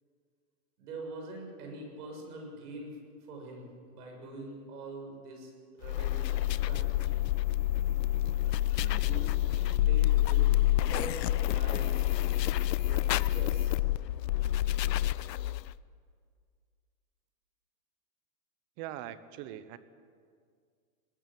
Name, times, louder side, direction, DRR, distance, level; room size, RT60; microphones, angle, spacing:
voice 1, 0.8-7.2 8.7-12.0 12.8-13.8, right 2 dB, 65° right, 1 dB, 7.4 m, -44 dB
sound 1, 5.8-15.7, left 14 dB, 90° left, 0.7 m, -28 dB
voice 2, 18.8-19.8, right 12 dB, 35° right, 14 dB, 1.0 m, -41 dB
20.0 x 15.0 x 8.9 m, 2.1 s
hypercardioid pair, 145°, 48 cm